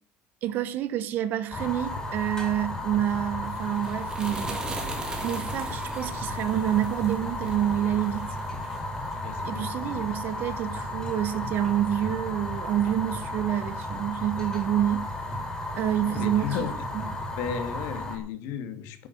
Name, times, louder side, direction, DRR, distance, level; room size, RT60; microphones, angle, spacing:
voice 1, 0.4-4.6 5.2-8.3 9.4-15.1 15.7-16.7 16.9-17.0, right 11 dB, 45° right, 1.3 m, -28 dB
Fire, 1.5-18.2, left 1 dB, 15° left, 4.0 m, -34 dB
sound 1, 3.1-9.8, right 3 dB, 15° right, 2.6 m, -40 dB
voice 2, 9.2-10.1 16.0-16.8 17.4-19.1, left 7 dB, 65° left, 2.3 m, -34 dB
11.0 x 8.5 x 8.2 m
cardioid pair, 170°, 5 cm